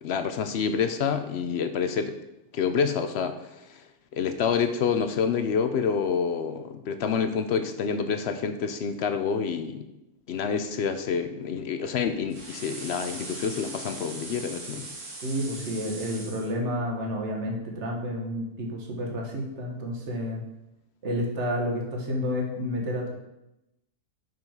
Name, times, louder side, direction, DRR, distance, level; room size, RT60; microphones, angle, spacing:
voice 1, 0.0-2.2 2.5-3.8 4.1-9.9 10.3-14.9, left 6 dB, 70° left, 9 dB, 0.6 m, -28 dB
sound 1, 12.3-16.5, right 2 dB, 80° right, 2.0 m, -40 dB
voice 2, 15.2-20.4 21.0-23.1, equal, 50° right, 1 dB, 1.6 m, -30 dB
5.4 x 5.4 x 5.8 m, 0.89 s
omnidirectional pair, 1.6 m